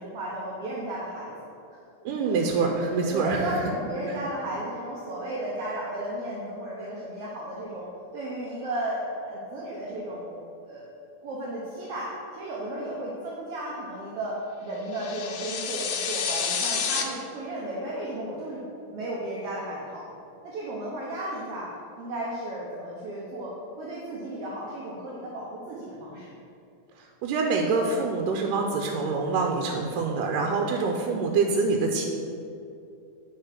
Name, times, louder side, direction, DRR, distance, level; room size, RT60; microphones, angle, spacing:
voice 1, 0.0-1.3 1.7-1.8 2.2-2.5 2.9-7.8 8.1-10.8 11.2-18.6 18.9-20.0 20.4-21.7 22.0-23.5 23.8-26.3, right 1 dB, 60° right, -5 dB, 1.6 m, -34 dB
voice 2, 2.1-3.6 4.0-4.2 27.2-32.1, right 4 dB, 90° right, 2 dB, 2.3 m, -25 dB
sound 1, 14.9-17.0, left 6 dB, 85° left, 1.3 m, -29 dB
10.5 x 3.9 x 5.8 m, 2.6 s
omnidirectional pair, 3.7 m